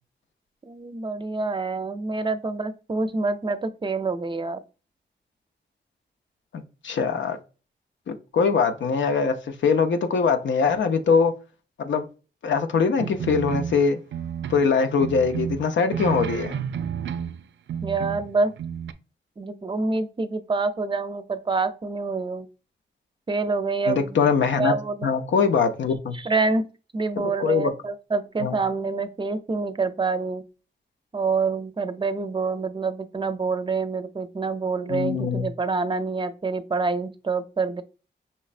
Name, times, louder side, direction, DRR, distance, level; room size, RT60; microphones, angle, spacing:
voice 1, 0.7-4.6 17.8-18.5 19.4-22.5 23.3-24.3 24.6-25.1 26.1-26.6 26.9-30.4 31.1-37.8, right 4 dB, 25° right, 0.5 m, -26 dB
voice 2, 6.5-7.4 8.1-9.3 9.6-11.3 11.8-12.0 12.4-14.0 14.5-16.6 23.9-24.7 25.0-26.2 27.4-27.7 28.4-28.6 34.9-35.5, left 5 dB, 80° left, 0.6 m, -22 dB
sound 1, 13.0-14.7 15.0-17.4 17.7-18.3 18.6-18.9, right 8 dB, 80° right, 0.4 m, -31 dB
5.5 x 3.1 x 2.5 m
cardioid pair, 75°, 19 cm